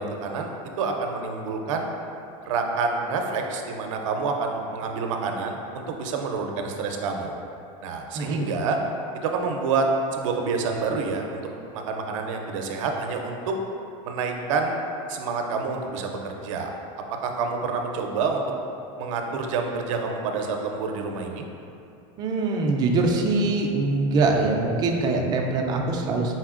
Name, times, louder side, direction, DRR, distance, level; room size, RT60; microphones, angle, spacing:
voice 1, 0.0-1.9 2.4-7.4 7.8-8.8 9.1-9.9 10.1-13.5 14.0-14.8 15.1-16.7 17.2-18.4 19.0-21.4, right 4 dB, 75° right, 3 dB, 0.5 m, -28 dB
voice 2, 8.2-8.5 22.2-26.3, right 3 dB, 25° right, 1 dB, 0.3 m, -23 dB
4.3 x 3.8 x 2.4 m, 2.7 s
supercardioid pair, 150°, 16 cm